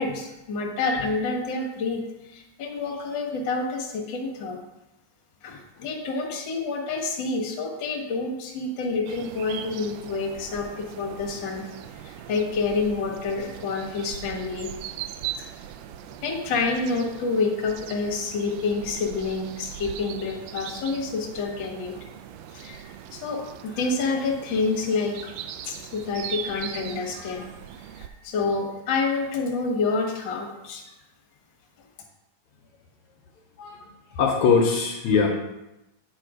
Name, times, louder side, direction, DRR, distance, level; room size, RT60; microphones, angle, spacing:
voice 1, 0.0-2.0 2.2-4.6 5.4-14.7 15.4-15.5 16.2-22.0 22.5-25.3 25.6-27.5 27.9-30.8, left 4 dB, 45° left, 0 dB, 1.7 m, -28 dB
sound 1, 9.1-28.1, right 10 dB, 90° right, 1.5 m, -40 dB
voice 2, 33.6-35.3, left 5 dB, 70° left, 1 dB, 2.1 m, -22 dB
8.8 x 5.7 x 4.9 m, 0.93 s
omnidirectional pair, 3.6 m